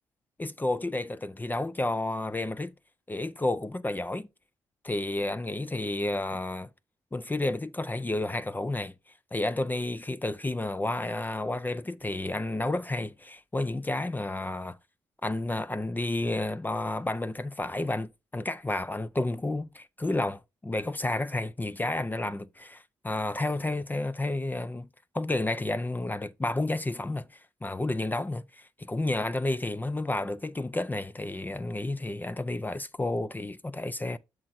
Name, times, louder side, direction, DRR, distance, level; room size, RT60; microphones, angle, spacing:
voice 1, 0.4-2.7 3.1-4.3 4.8-6.7 7.1-8.9 9.3-14.8 15.2-24.9 25.1-34.2, left 2 dB, 20° left, 0.5 m, -31 dB
8.4 x 6.4 x 2.6 m
supercardioid pair, 45°, 10 cm